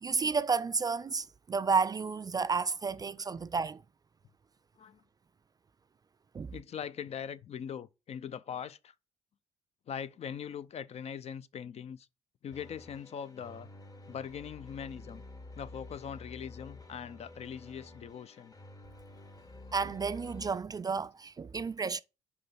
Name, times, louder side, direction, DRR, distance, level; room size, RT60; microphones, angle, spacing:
voice 1, 0.0-3.8 6.3-6.5 19.7-22.0, right 5 dB, 25° right, 0.4 m, -31 dB
voice 2, 6.5-8.9 9.9-12.1 12.4-13.7 14.1-15.2 15.5-18.5, left 8 dB, 40° left, 0.6 m, -41 dB
sound 1, 12.5-20.5, left 2 dB, 25° left, 1.4 m, -50 dB
5.5 x 5.0 x 6.1 m
hypercardioid pair, 55°, 16 cm